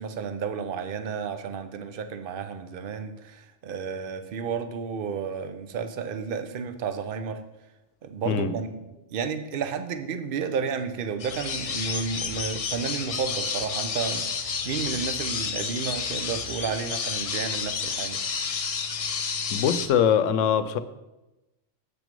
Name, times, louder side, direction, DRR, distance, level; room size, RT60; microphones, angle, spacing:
voice 1, 0.0-7.4 8.0-8.7 9.1-18.2, right 6 dB, 55° right, 9 dB, 0.8 m, -32 dB
sound 1, 11.2-19.9, left 6 dB, 50° left, 0.4 m, -30 dB
voice 2, 19.5-20.8, left 8 dB, 90° left, 12 dB, 1.0 m, -22 dB
8.1 x 6.1 x 5.2 m, 1.0 s
omnidirectional pair, 1.2 m